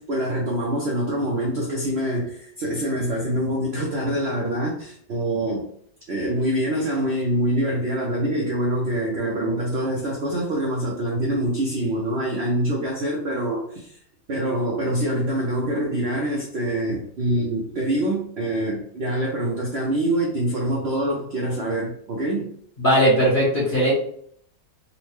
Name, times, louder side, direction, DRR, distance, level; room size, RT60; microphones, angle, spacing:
voice 1, 0.0-5.7 6.1-14.0 14.3-22.5, right 1 dB, 65° right, -2 dB, 0.6 m, -25 dB
voice 2, 22.8-23.9, equal, 40° left, -6 dB, 0.8 m, -18 dB
4.0 x 2.1 x 3.0 m, 0.64 s
omnidirectional pair, 2.0 m